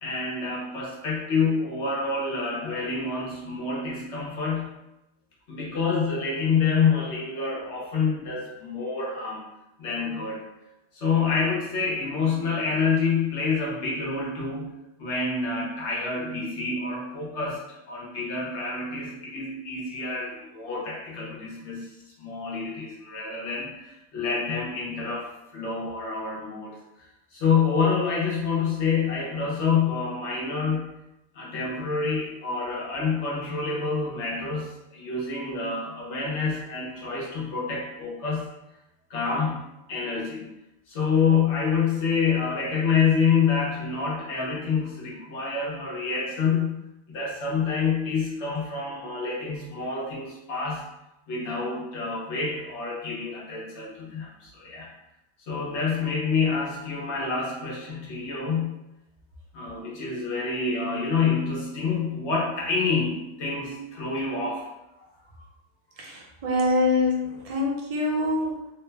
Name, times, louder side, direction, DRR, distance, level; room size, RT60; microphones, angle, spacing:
voice 1, 0.0-4.7 5.5-9.5 9.8-10.5 10.9-14.7 15.0-17.6 17.9-21.9 22.2-26.8 27.3-30.9 31.3-38.5 39.1-39.6 39.9-40.5 40.9-46.8 47.1-50.9 51.3-54.9 55.5-58.7 59.5-64.6, left 5 dB, 75° left, -4 dB, 1.2 m, -27 dB
voice 2, 66.0-68.7, left 2 dB, 40° right, -1 dB, 0.6 m, -25 dB
3.1 x 2.3 x 3.2 m, 0.92 s
omnidirectional pair, 1.2 m